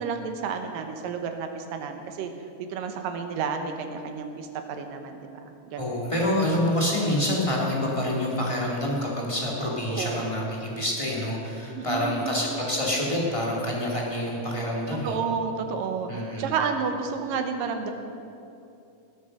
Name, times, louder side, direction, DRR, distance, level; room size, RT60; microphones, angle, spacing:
voice 1, 0.0-2.3 2.6-5.9 9.9-10.3 11.7-12.4 15.0-17.9, right 6 dB, 85° right, 6 dB, 2.7 m, -31 dB
voice 2, 5.8-15.2 16.1-16.5, left 1 dB, 10° left, -4 dB, 1.8 m, -27 dB
19.0 x 8.4 x 6.4 m, 2.7 s
omnidirectional pair, 3.8 m